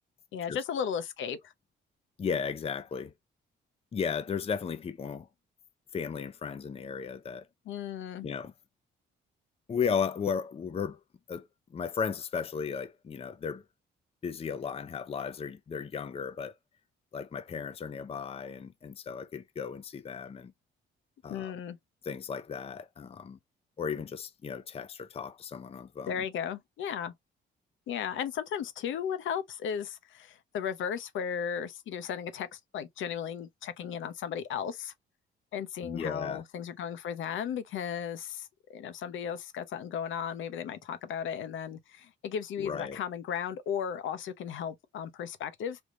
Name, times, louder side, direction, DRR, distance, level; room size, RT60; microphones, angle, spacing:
voice 1, 0.3-1.4 7.7-8.3 21.3-21.8 26.1-27.1 27.9-34.9 35.5-45.8, left 8 dB, 75° left, 0.8 m, -35 dB
voice 2, 2.2-3.1 3.9-5.3 5.9-7.5 8.2-8.5 9.7-11.0 11.3-13.6 14.2-16.5 17.1-20.5 21.2-21.5 22.0-23.4 23.8-26.3 35.8-36.4 42.6-43.0, left 6 dB, 30° left, 0.5 m, -35 dB
3.5 x 2.9 x 2.5 m
cardioid pair, 90°, 20 cm